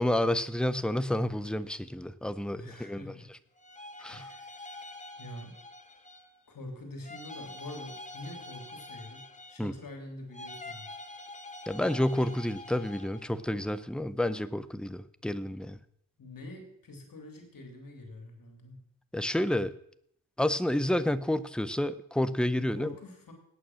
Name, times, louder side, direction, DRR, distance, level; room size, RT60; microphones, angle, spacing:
voice 1, 0.0-3.1 4.0-4.2 9.6-9.7 11.7-15.8 19.1-19.7 20.4-22.9, left 1 dB, 5° left, 13 dB, 0.5 m, -30 dB
voice 2, 2.6-3.3 4.0-4.7 5.2-5.6 6.5-10.9 16.2-18.8 22.6-23.3, left 1 dB, 70° left, 3 dB, 3.4 m, -45 dB
sound 1, 3.6-6.4 7.0-9.8 10.3-13.3, left 2 dB, 20° left, 1.2 m, -46 dB
18.0 x 8.9 x 6.2 m, 0.71 s
wide cardioid pair, 170°, 35 cm